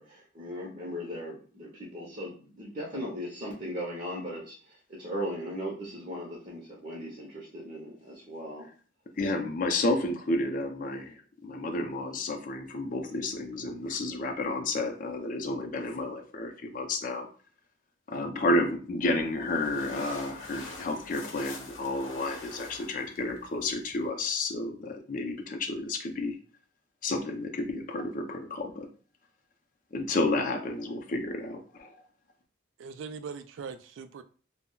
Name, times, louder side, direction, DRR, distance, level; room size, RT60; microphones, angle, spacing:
voice 1, 0.0-8.7, equal, 40° right, -3 dB, 0.6 m, -38 dB
voice 2, 9.2-17.3 18.1-26.3 27.0-28.9 29.9-31.9, left 2 dB, 45° left, 4 dB, 0.4 m, -31 dB
sound 1, 19.0-24.1, left 3 dB, 90° left, 0.7 m, -45 dB
voice 3, 32.8-34.2, right 5 dB, 80° right, 10 dB, 0.3 m, -40 dB
2.2 x 2.0 x 3.7 m, 0.39 s
head